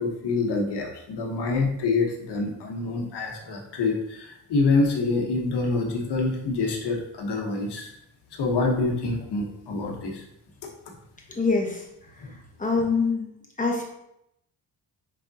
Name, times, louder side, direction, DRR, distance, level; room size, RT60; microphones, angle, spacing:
voice 1, 0.0-7.9 8.3-10.2 12.2-12.3, left 3 dB, 60° left, 0 dB, 1.2 m, -26 dB
voice 2, 11.4-11.8 12.6-13.3 13.6-13.8, left 4 dB, 15° left, 0 dB, 1.0 m, -24 dB
5.2 x 3.5 x 2.7 m, 0.80 s
cardioid pair, 105°, 46 cm